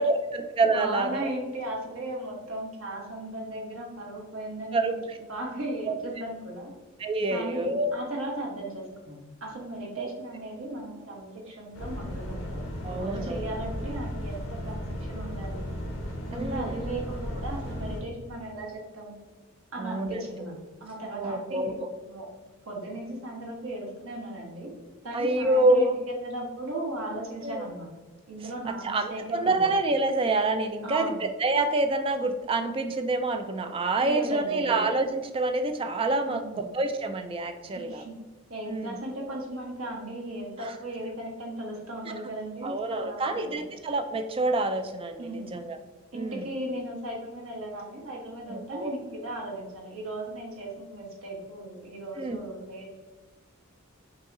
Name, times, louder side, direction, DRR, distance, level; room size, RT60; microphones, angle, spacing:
voice 1, 0.0-1.3 4.7-4.9 5.9-6.0 7.0-8.0 10.0-10.1 12.8-13.4 16.3-16.7 19.8-20.2 21.2-21.7 25.1-25.9 27.4-27.6 28.6-38.0 38.7-39.0 42.6-45.2 45.5-45.8 46.1-46.4 48.5-49.0 52.2-52.4, right 2 dB, 25° right, 7 dB, 0.3 m, -27 dB
voice 2, 0.6-6.7 7.3-15.7 16.3-19.1 19.7-22.3 22.7-24.7 25.0-27.9 28.3-29.7 30.8-31.2 34.0-34.8 36.3-36.7 37.7-38.2 38.5-43.6 45.2-45.6 46.1-52.9, right 1 dB, 75° right, -1 dB, 1.1 m, -37 dB
sound 1, 11.7-18.0, equal, 70° left, 1.1 m, -35 dB
5.4 x 2.8 x 2.6 m, 1.3 s
head